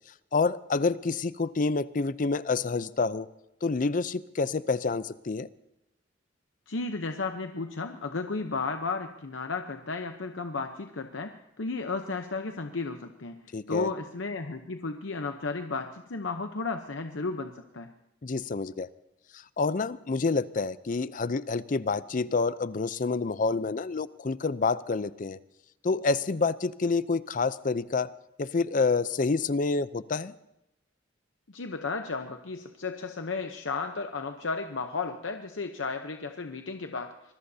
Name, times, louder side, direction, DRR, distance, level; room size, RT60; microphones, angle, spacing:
voice 1, 0.3-3.3 3.6-5.5 13.5-13.9 18.2-18.9 19.3-25.4 25.8-28.1 28.4-30.3, left 4 dB, 45° left, 16 dB, 0.5 m, -28 dB
voice 2, 6.7-13.4 13.7-17.9 31.5-37.3, left 4 dB, 85° left, 6 dB, 0.8 m, -34 dB
25.5 x 20.5 x 2.8 m, 0.89 s
head